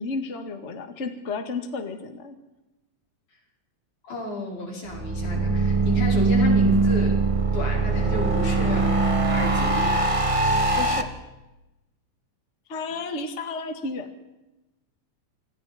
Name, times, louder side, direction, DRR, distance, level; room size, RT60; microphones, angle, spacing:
voice 1, 0.0-2.3 10.8-11.1 12.7-14.1, left 3 dB, 25° left, 6 dB, 1.8 m, -32 dB
voice 2, 4.0-7.2 7.5-10.1, left 2 dB, 85° left, -1 dB, 6.4 m, -32 dB
sound 1, 4.9-11.0, right 3 dB, 25° right, 0.7 m, -21 dB
28.0 x 25.5 x 4.3 m, 0.98 s
omnidirectional pair, 3.4 m